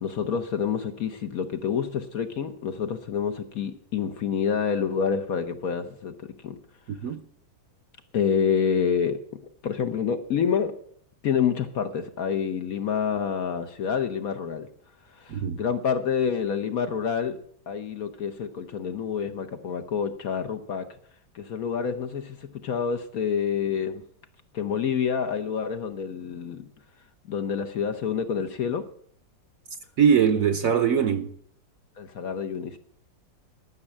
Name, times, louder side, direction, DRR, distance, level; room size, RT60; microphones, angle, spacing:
voice 1, 0.0-6.1 6.4-6.6 8.1-9.2 9.6-10.7 11.2-14.7 15.1-17.4 17.7-20.9 21.3-24.0 24.5-26.7 27.3-28.8 32.0-32.8, left 7 dB, 60° left, 1.1 m, -27 dB
voice 2, 30.0-31.3, right 7 dB, 60° right, 1.0 m, -21 dB
12.5 x 6.3 x 8.5 m
omnidirectional pair, 2.0 m